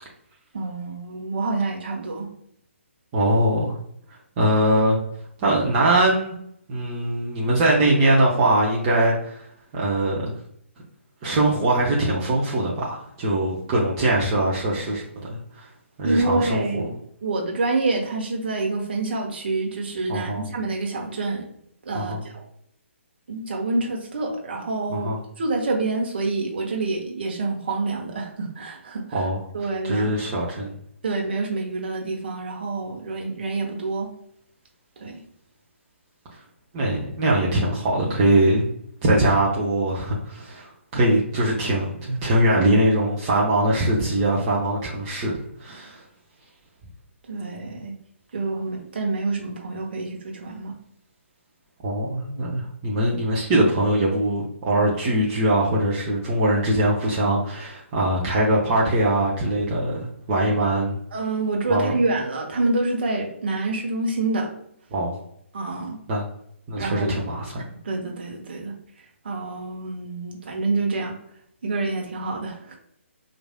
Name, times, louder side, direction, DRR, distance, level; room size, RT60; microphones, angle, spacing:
voice 1, 0.5-2.3 16.0-16.9 17.2-21.5 21.9-22.4 23.3-25.1 25.4-29.2 29.5-30.1 31.0-34.1 35.0-35.2 47.3-47.9 48.3-50.7 61.1-64.5 65.5-66.0 66.8-67.2 67.8-68.7 69.2-71.1 71.6-72.8, right 3 dB, 50° right, 0 dB, 0.9 m, -27 dB
voice 2, 3.1-3.8 4.4-5.0 5.4-6.3 6.7-9.4 9.7-10.3 11.2-15.7 16.0-16.8 20.1-20.4 21.9-22.2 24.9-25.2 29.1-29.4 29.8-30.7 36.7-38.7 39.0-46.0 51.8-61.0 61.7-61.9 64.9-65.2 66.1-66.3 66.7-67.6, right 1 dB, 25° right, -5 dB, 0.7 m, -22 dB
4.7 x 2.6 x 2.2 m, 0.70 s
figure-of-eight pair, 135°, 7 cm